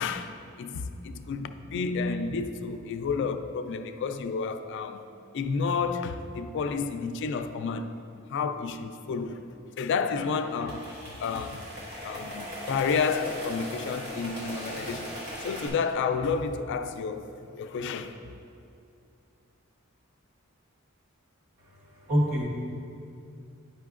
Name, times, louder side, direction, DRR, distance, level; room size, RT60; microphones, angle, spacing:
voice 1, 0.0-5.1 5.3-7.9 8.3-9.5 9.8-11.6 12.0-18.2, left 5 dB, 55° left, 0.3 m, -31 dB
sound 1, 10.1-15.7, equal, 50° right, 1.4 m, -39 dB
voice 2, 21.6-22.5, equal, 80° right, 1.4 m, -27 dB
9.7 x 5.5 x 2.4 m
head